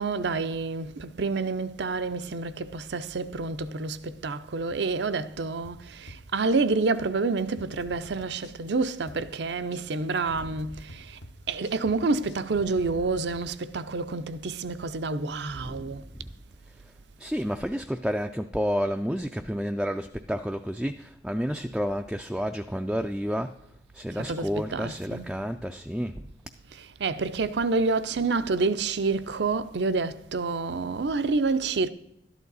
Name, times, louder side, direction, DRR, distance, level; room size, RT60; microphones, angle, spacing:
voice 1, 0.0-11.1 11.5-16.0 24.2-25.3 27.0-31.9, right 3 dB, 65° right, 0.6 m, -28 dB
sound 1, 5.6-6.7 6.9-7.0 7.4-8.7 9.1-12.4, left 1 dB, 70° left, 1.0 m, -48 dB
voice 2, 15.6-16.3 17.2-23.6 23.9-26.2, equal, 5° right, 0.3 m, -30 dB
12.5 x 11.0 x 4.0 m
head